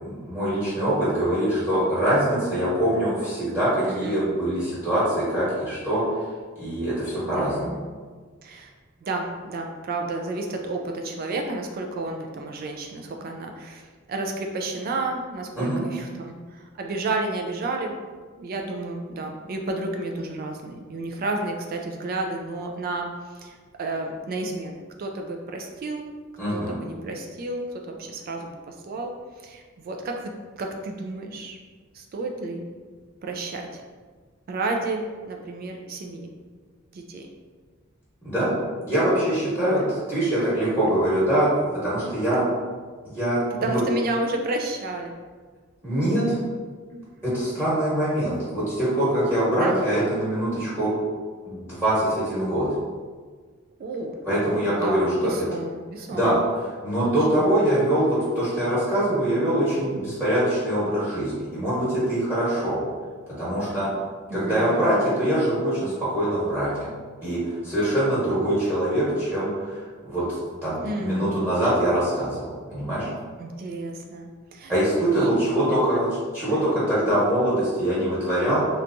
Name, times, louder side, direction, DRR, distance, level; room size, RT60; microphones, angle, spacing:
voice 1, 0.0-6.0 6.6-7.8 15.5-15.8 26.4-26.8 38.2-38.5 38.8-42.4 43.0-43.8 45.8-46.4 47.2-50.9 51.4-52.7 54.3-55.3 56.1-62.8 63.3-63.9 64.3-66.9 67.2-73.1 74.7-76.1 76.3-78.8, right 1 dB, 10° right, -11 dB, 1.2 m, -23 dB
voice 2, 3.9-4.2 7.2-7.8 8.4-8.7 9.0-17.9 18.4-23.1 23.3-26.1 26.5-29.1 29.4-31.6 31.9-32.7 33.2-33.8 34.5-36.3 36.9-37.3 39.8-39.9 42.2-42.5 43.6-45.1 46.9-47.0 49.6-49.8 53.8-56.4 57.3-57.4 64.3-64.9 70.8-71.3 73.4-74.7 75.1-75.4 76.4-76.8, right 2 dB, 45° right, 3 dB, 0.3 m, -31 dB
3.3 x 2.9 x 2.6 m, 1.5 s
head